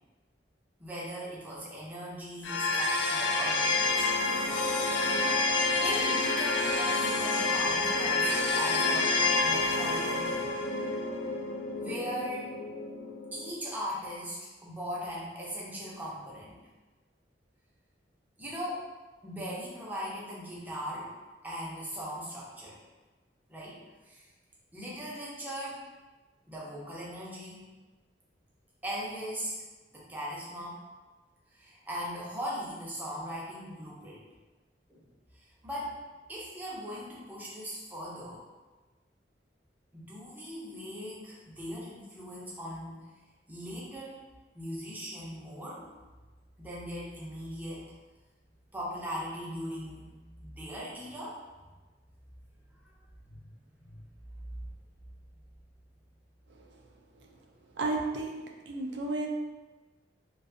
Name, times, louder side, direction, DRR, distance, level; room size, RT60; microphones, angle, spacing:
voice 1, 0.8-4.1 5.8-10.6 11.8-12.5 13.3-16.6 18.4-18.9 19.2-21.1 21.4-22.8 23.5-23.8 24.1-24.2 24.7-25.8 26.5-27.7 28.8-29.6 29.9-30.8 31.5-34.3 34.9-35.1 35.3-36.0 36.3-38.4 39.9-42.9 43.5-44.2 44.5-45.8 46.6-47.8 48.7-51.4 53.2-53.5 53.8-54.0, equal, 10° right, -6 dB, 0.5 m, -39 dB
sound 1, 2.4-13.5, left 3 dB, 75° left, 0.3 m, -28 dB
voice 2, 57.8-59.3, right 2 dB, 75° right, 1 dB, 0.4 m, -33 dB
2.4 x 2.2 x 2.6 m, 1.2 s
head